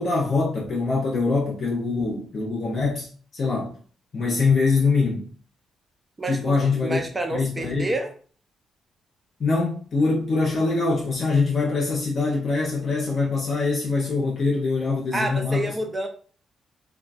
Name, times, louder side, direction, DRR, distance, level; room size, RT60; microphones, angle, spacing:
voice 1, 0.0-3.7 4.1-5.3 6.3-7.0 7.3-7.9 9.4-15.7, left 4 dB, 55° left, 0.7 m, -23 dB
voice 2, 6.2-6.5 6.8-8.1 15.1-16.1, right 2 dB, 25° right, 0.5 m, -28 dB
2.3 x 2.2 x 2.4 m
cardioid pair, 75°, 0 cm